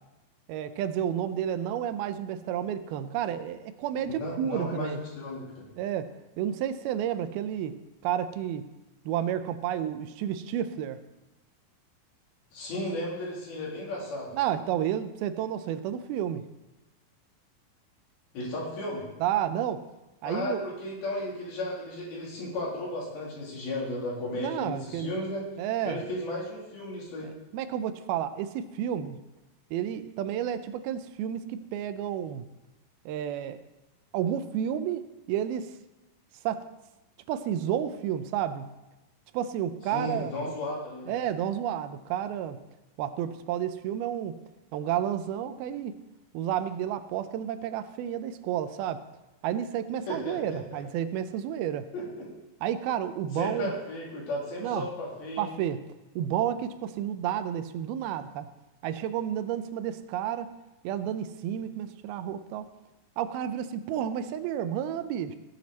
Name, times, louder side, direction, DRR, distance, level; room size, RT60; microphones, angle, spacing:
voice 1, 0.5-5.0 5.8-7.8 8.0-8.7 9.1-11.0 14.3-16.5 19.2-19.9 20.2-20.7 24.4-25.1 25.6-26.0 27.2-29.2 29.7-32.5 33.1-33.6 34.1-35.7 36.4-36.7 37.3-38.7 39.3-40.3 41.1-42.6 43.0-44.4 44.7-46.0 46.3-49.0 49.4-51.9 52.6-53.7 54.6-54.9 55.4-55.8 56.2-58.5 58.8-60.5 60.8-62.7 63.2-65.4, right 10 dB, 85° right, 11 dB, 2.5 m, -31 dB
voice 2, 4.1-5.7 12.5-14.3 18.3-19.0 20.2-25.4 25.8-27.3 39.9-41.2 50.1-50.8 51.9-52.3 53.3-55.5, left 1 dB, 75° left, -4 dB, 5.1 m, -34 dB
17.5 x 7.7 x 4.2 m, 1.0 s
omnidirectional pair, 4.4 m